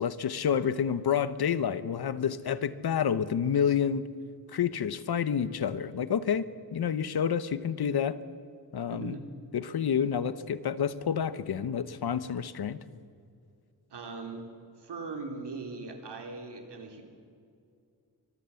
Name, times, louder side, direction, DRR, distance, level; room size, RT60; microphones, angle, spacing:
voice 1, 0.0-4.1 4.5-8.2 8.7-9.2 9.5-12.8, left 8 dB, 65° left, 14 dB, 1.0 m, -29 dB
voice 2, 8.9-9.2 13.9-14.5 14.8-17.0, right 3 dB, 85° right, 4 dB, 3.4 m, -40 dB
24.5 x 22.0 x 7.1 m, 2.4 s
wide cardioid pair, 160°, 40 cm